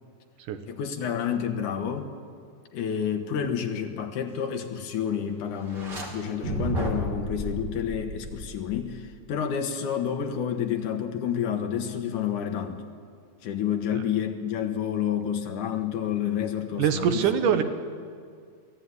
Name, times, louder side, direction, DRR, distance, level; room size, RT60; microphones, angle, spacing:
voice 1, 0.7-2.1 2.7-12.8 13.4-17.5, left 8 dB, 70° left, 6 dB, 2.8 m, -29 dB
sound 1, 5.6-6.1 6.4-9.0, equal, 30° right, 3.3 m, -32 dB
voice 2, 16.8-17.6, right 8 dB, 75° right, 8 dB, 2.7 m, -23 dB
24.0 x 16.0 x 9.7 m, 2.1 s
omnidirectional pair, 3.8 m